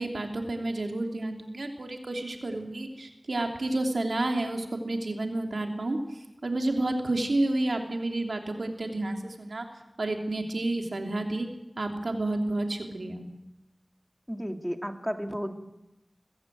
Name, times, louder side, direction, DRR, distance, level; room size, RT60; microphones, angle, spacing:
voice 1, 0.0-9.7 10.0-11.5 11.8-13.3, right 2 dB, 90° right, 3 dB, 3.0 m, -30 dB
voice 2, 14.3-15.5, equal, 5° right, 5 dB, 2.4 m, -33 dB
21.5 x 15.0 x 9.2 m, 0.95 s
wide cardioid pair, 45°, 0 cm